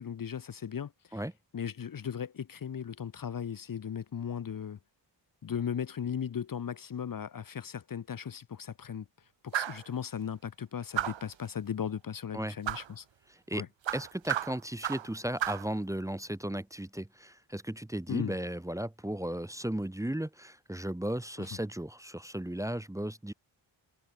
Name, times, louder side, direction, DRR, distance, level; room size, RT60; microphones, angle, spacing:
voice 1, 0.0-1.2 1.5-4.8 5.4-9.0 9.4-13.0 13.5-13.7 18.1-18.3 21.4-21.5, left 8 dB, 45° left, 1.0 m, -37 dB
sound 1, 9.5-9.9 10.9-11.3 12.6-12.9 13.8-15.1 15.4-15.7, right 11 dB, 70° right, 1.2 m, -33 dB
voice 2, 13.9-23.3, right 1 dB, 5° right, 1.2 m, -35 dB
wide cardioid pair, 125°, 46 cm